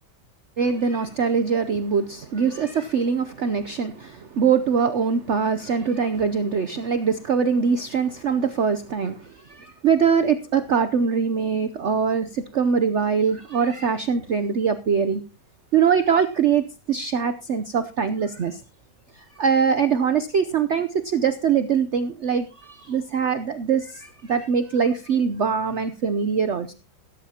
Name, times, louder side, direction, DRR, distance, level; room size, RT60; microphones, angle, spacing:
voice 1, 0.6-15.2 15.7-18.6 19.1-26.7, right 6 dB, 55° right, 10 dB, 0.8 m, -23 dB
17.0 x 13.5 x 2.8 m, 0.30 s
omnidirectional pair, 1.8 m